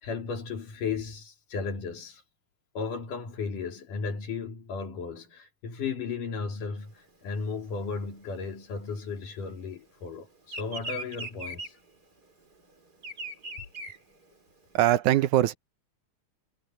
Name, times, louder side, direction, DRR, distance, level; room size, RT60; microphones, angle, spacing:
voice 1, 0.0-2.2 2.7-11.8, left 5 dB, 90° left, 4.7 m, -35 dB
Bird vocalization bird call bird song, 6.9-9.8 10.1-14.8, right 1 dB, 30° right, 4.3 m, -40 dB
voice 2, 14.7-15.5, right 13 dB, 75° right, 2.2 m, -22 dB
omnidirectional pair, 3.6 m